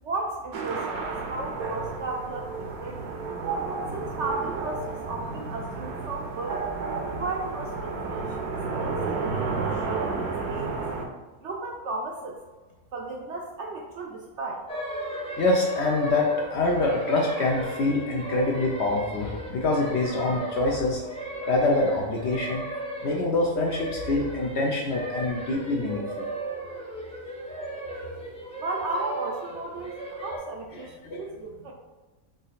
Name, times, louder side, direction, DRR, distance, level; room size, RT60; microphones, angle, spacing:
voice 1, 0.0-3.2 3.9-6.7 7.2-8.5 8.8-10.1 10.5-10.9 11.4-12.4 12.9-14.6 28.6-31.7, right 2 dB, 65° right, 0 dB, 0.7 m, -34 dB
sound 1, 0.5-11.1, right 4 dB, 80° right, 1.2 m, -31 dB
sound 2, 14.7-30.4, right 1 dB, 5° left, 0.4 m, -36 dB
voice 2, 15.4-21.0 21.5-22.6 23.0-26.3 30.7-31.3, left 2 dB, 60° left, -1 dB, 0.7 m, -25 dB
3.8 x 3.1 x 3.9 m, 1.2 s
omnidirectional pair, 1.5 m